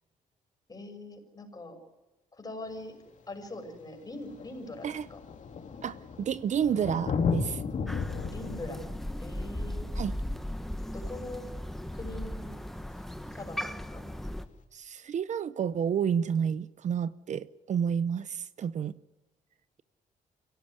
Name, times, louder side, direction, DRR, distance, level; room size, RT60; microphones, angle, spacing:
voice 1, 0.7-1.8 2.3-2.9 3.3-5.2 8.3-8.8 9.2-9.9 10.9-11.4 11.9-12.6 13.3-14.0, left 2 dB, 25° left, 6.1 m, -42 dB
Thunder, 2.7-2.8 3.8-3.9 4.1-11.4 13.1-13.2, left 5 dB, 55° left, 2.8 m, -35 dB
voice 2, 5.8-7.6 10.0-10.1 14.7-19.0, right 8 dB, 55° right, 0.7 m, -30 dB
Crow, 7.9-14.5, left 1 dB, ahead, 1.1 m, -37 dB
24.5 x 17.0 x 9.8 m
cardioid pair, 100°, 15 cm